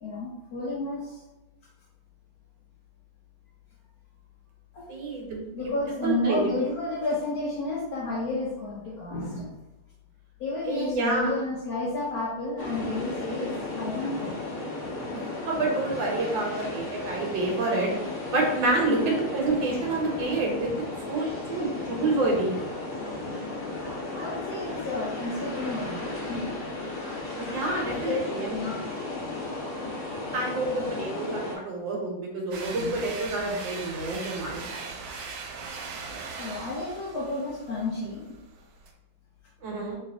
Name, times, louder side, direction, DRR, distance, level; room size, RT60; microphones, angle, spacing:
voice 1, 0.0-1.2 4.7-4.8 5.5-9.6 10.4-14.3 18.9-19.1 20.5-20.6 23.6-26.6 27.9-28.2 28.4-28.9 32.7-33.0 36.4-38.4, left 2 dB, 70° left, -3 dB, 0.9 m, -31 dB
voice 2, 4.9-5.7 6.0-6.5 10.7-11.3 15.1-15.2 15.4-17.9 18.3-20.7 21.1-22.5 27.4-28.6 30.3-35.0 39.6-40.0, right 2 dB, 70° right, -1 dB, 1.7 m, -28 dB
sound 1, 12.6-31.6, left 2 dB, 40° left, 0.8 m, -35 dB
sound 2, 32.5-38.9, right 4 dB, 85° right, 1.5 m, -39 dB
3.3 x 3.1 x 3.5 m, 1.0 s
omnidirectional pair, 2.2 m